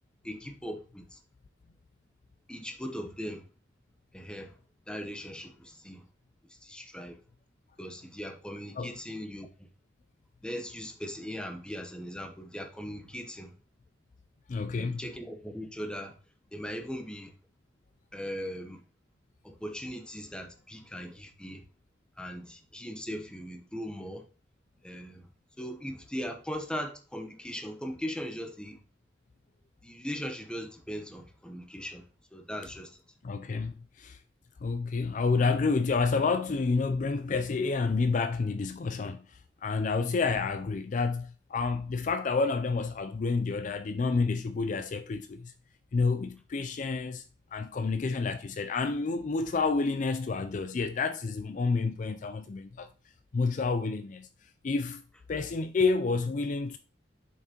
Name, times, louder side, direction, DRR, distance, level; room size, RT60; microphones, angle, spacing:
voice 1, 0.2-1.2 2.5-3.4 4.1-4.5 4.9-6.0 6.6-7.2 7.8-9.5 10.4-13.5 14.8-16.1 16.5-17.3 18.1-18.8 19.4-21.6 22.2-24.2 24.8-25.3 25.6-28.8 29.8-32.0 32.3-32.9, equal, 5° left, 0.9 m, -39 dB
voice 2, 14.5-15.1 32.6-32.7 33.2-34.2 34.6-45.5 45.9-47.2 47.5-52.9 53.3-54.3 54.6-55.0 55.3-56.8, left 4 dB, 45° left, 0.4 m, -29 dB
7.1 x 5.8 x 2.9 m
head